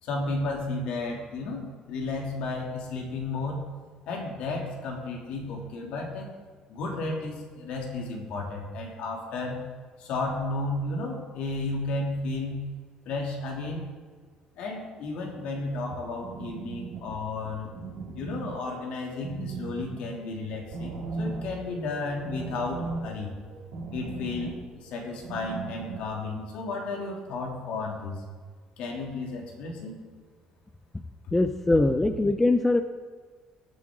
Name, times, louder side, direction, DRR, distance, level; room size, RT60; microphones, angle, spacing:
voice 1, 0.0-3.6 4.1-6.3 6.7-9.6 10.0-12.6 13.0-13.9 14.6-17.7 18.1-23.4 23.9-28.2 28.8-30.0, left 2 dB, 65° left, -1 dB, 2.7 m, -33 dB
sound 1, 15.5-26.2, right 4 dB, 80° right, 2.6 m, -38 dB
voice 2, 31.3-32.8, left 2 dB, 10° left, 8 dB, 0.4 m, -22 dB
19.0 x 7.5 x 3.8 m, 1.5 s
cardioid pair, 160°, 2 cm